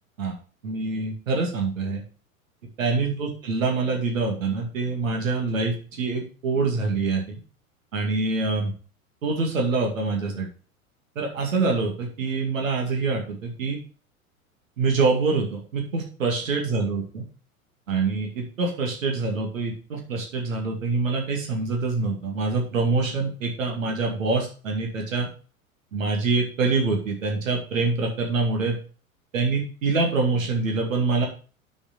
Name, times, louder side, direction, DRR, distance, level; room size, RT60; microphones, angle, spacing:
voice 1, 0.6-2.0 2.8-7.2 7.9-8.7 9.2-10.5 11.2-13.8 14.8-17.2 17.9-25.3 25.9-28.8 29.3-31.3, right 3 dB, 65° right, 1 dB, 2.4 m, -25 dB
6.9 x 5.5 x 6.6 m, 0.38 s
figure-of-eight pair, 90°, 43 cm